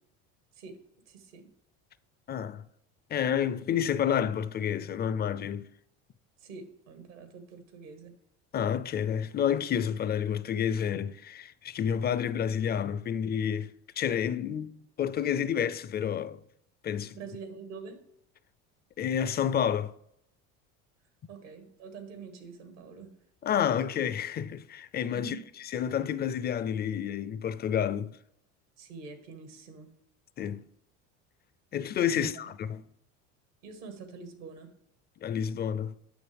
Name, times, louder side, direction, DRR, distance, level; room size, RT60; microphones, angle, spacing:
voice 1, 1.1-1.5 6.4-8.2 17.1-18.0 21.3-23.1 25.1-25.4 28.8-29.9 32.1-32.4 33.6-34.7, right 4 dB, 85° right, 1.8 m, -45 dB
voice 2, 2.3-2.6 3.1-5.7 8.5-16.4 16.8-17.2 19.0-19.9 23.4-25.3 25.7-28.2 30.4-30.6 31.7-32.8 35.2-35.9, left 8 dB, 30° left, 0.4 m, -29 dB
9.2 x 6.2 x 3.4 m
supercardioid pair, 90°, 36 cm